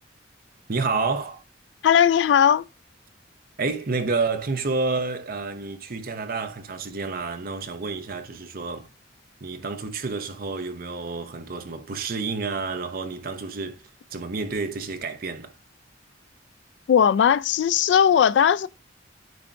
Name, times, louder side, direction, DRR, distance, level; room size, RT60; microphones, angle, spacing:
voice 1, 0.7-1.4 3.6-8.9 9.4-13.8 14.1-15.5, right 4 dB, 50° right, 0.8 m, -29 dB
voice 2, 1.8-2.6 16.9-18.7, left 8 dB, 65° left, 0.3 m, -18 dB
9.5 x 4.5 x 2.5 m
head